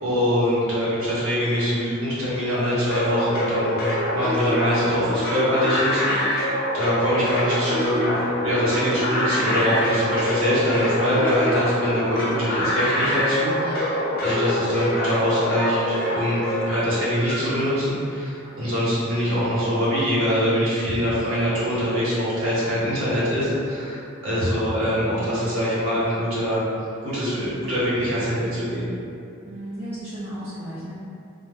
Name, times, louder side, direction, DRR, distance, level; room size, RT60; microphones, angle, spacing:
voice 1, 0.0-3.8 4.1-26.6 27.0-28.9, equal, 80° right, -10 dB, 1.0 m, -24 dB
sound 1, 2.9-16.8, left 1 dB, 45° left, 0.5 m, -25 dB
Bird vocalization bird call bird song, 7.3-18.3, right 1 dB, 30° right, 0.7 m, -42 dB
voice 2, 29.4-30.9, right 1 dB, 10° right, -12 dB, 0.3 m, -35 dB
2.2 x 2.0 x 3.4 m, 2.6 s
head